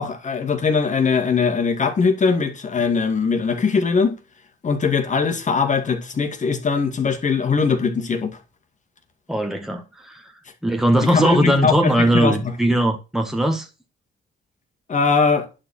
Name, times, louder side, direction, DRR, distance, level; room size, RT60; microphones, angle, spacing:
voice 1, 0.0-4.2 4.6-8.4 11.0-12.5 14.9-15.5, left 5 dB, 40° left, 2.3 m, -21 dB
voice 2, 9.3-10.3 10.6-13.7, right 1 dB, ahead, 1.7 m, -20 dB
11.0 x 4.4 x 6.5 m
cardioid pair, 90°, 20 cm